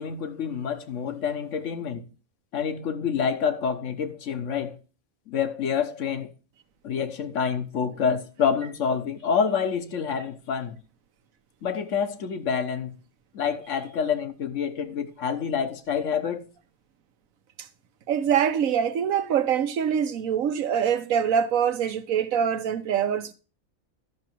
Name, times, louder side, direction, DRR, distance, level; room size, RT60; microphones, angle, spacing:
voice 1, 0.0-2.0 2.5-4.7 5.3-6.3 6.8-10.8 11.6-12.9 13.3-16.4, left 7 dB, 65° left, 1.3 m, -27 dB
voice 2, 18.1-23.3, right 8 dB, 80° right, 1.2 m, -24 dB
12.5 x 6.0 x 4.5 m
omnidirectional pair, 1.4 m